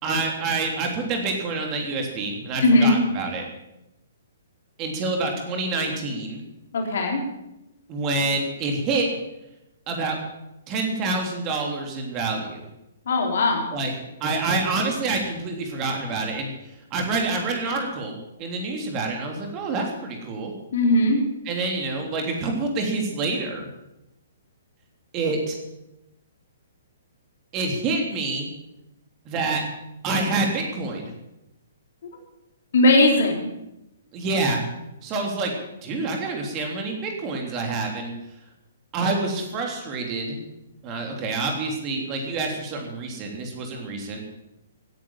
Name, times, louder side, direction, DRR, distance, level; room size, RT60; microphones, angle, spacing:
voice 1, 0.0-3.4 4.8-6.4 7.9-9.1 9.9-10.2 10.7-12.7 13.7-13.9 14.2-20.5 21.4-23.7 25.1-25.6 27.5-28.5 29.2-29.6 30.0-31.1 34.1-34.6 35.0-38.1 38.9-40.4 40.8-44.2, right 3 dB, 25° right, 2 dB, 3.4 m, -27 dB
voice 2, 2.6-3.0 6.7-7.2 13.1-13.7 20.7-21.2 32.7-33.5, left 2 dB, 55° left, 1 dB, 4.0 m, -18 dB
16.5 x 10.5 x 7.5 m, 0.90 s
figure-of-eight pair, 120°, 0 cm